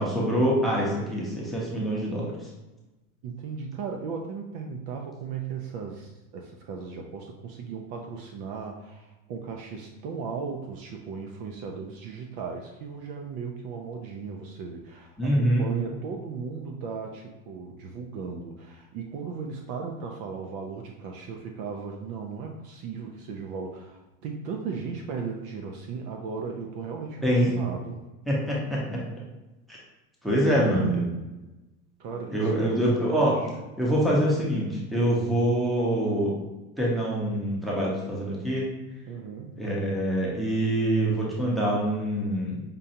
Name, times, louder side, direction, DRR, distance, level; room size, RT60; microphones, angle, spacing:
voice 1, 0.0-2.3 15.2-15.7 27.2-27.5 28.3-29.0 30.2-31.2 32.3-33.4 33.8-36.3 36.8-38.7 39.6-42.6, right 1 dB, ahead, -5 dB, 0.6 m, -25 dB
voice 2, 3.2-28.0 32.0-32.8 33.2-33.5 39.1-39.5, right 5 dB, 45° right, 2 dB, 0.5 m, -37 dB
5.2 x 2.3 x 2.7 m, 1.1 s
supercardioid pair, 145°, 43 cm